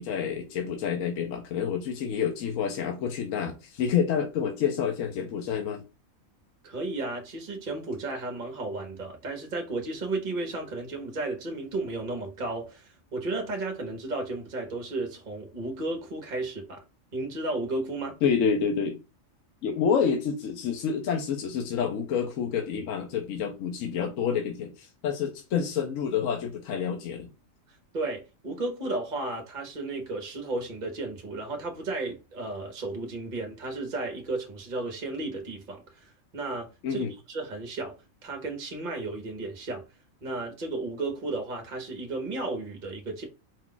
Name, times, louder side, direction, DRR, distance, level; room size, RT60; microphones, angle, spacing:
voice 1, 0.0-5.8 18.2-19.0 19.6-27.3 36.8-37.1, left 7 dB, 75° left, 1.0 m, -28 dB
voice 2, 6.6-16.8 17.1-18.2 27.9-38.0 38.2-39.8 40.2-43.3, right 2 dB, 40° right, 1.0 m, -33 dB
4.6 x 2.3 x 3.8 m
omnidirectional pair, 1.4 m